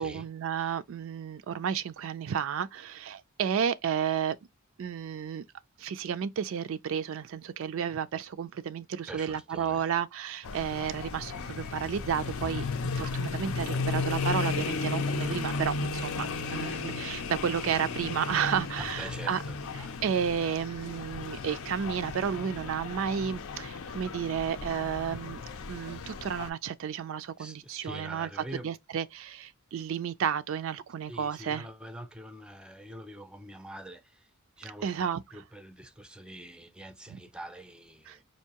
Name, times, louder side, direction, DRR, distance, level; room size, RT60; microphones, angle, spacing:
voice 1, 0.0-4.4 4.8-5.4 5.8-19.4 19.8-25.4 25.7-28.3 28.6-31.7 34.8-35.2 37.1-37.2 38.1-38.2, right 8 dB, 65° right, 0.4 m, -32 dB
voice 2, 9.1-10.0 14.5-14.6 16.5-16.7 18.8-20.0 27.4-28.7 31.1-34.3 34.6-35.1 35.3-38.2, right 1 dB, 5° right, 0.4 m, -45 dB
sound 1, 10.4-26.5, left 4 dB, 75° left, 0.5 m, -34 dB
4.5 x 2.6 x 2.8 m
head